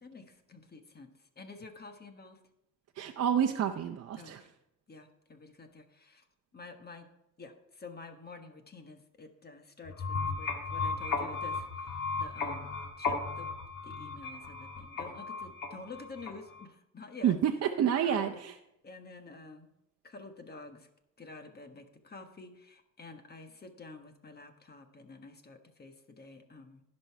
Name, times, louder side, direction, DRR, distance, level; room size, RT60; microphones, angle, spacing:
voice 1, 0.0-1.1 1.4-2.4 4.2-4.5 4.9-6.3 6.5-7.1 7.4-13.5 13.8-17.3 18.0-18.4 18.8-19.7 20.0-20.9 21.2-26.8, left 3 dB, 30° left, 6 dB, 1.3 m, -49 dB
voice 2, 3.0-4.4 17.2-18.5, right 9 dB, 55° right, 4 dB, 0.7 m, -29 dB
sound 1, 9.9-16.6, left 4 dB, 80° left, 1.9 m, -35 dB
16.0 x 5.5 x 4.7 m, 0.84 s
cardioid pair, 90°, 30 cm